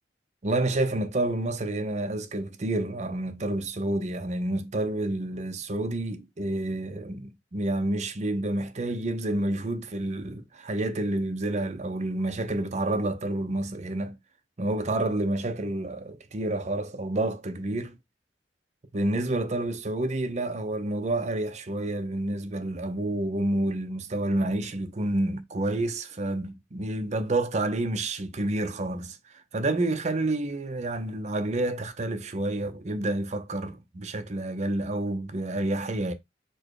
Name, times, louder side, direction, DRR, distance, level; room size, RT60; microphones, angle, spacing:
voice 1, 0.4-14.2 14.6-18.0 18.9-36.1, right 2 dB, 40° right, 0.6 m, -29 dB
4.5 x 2.1 x 4.7 m
head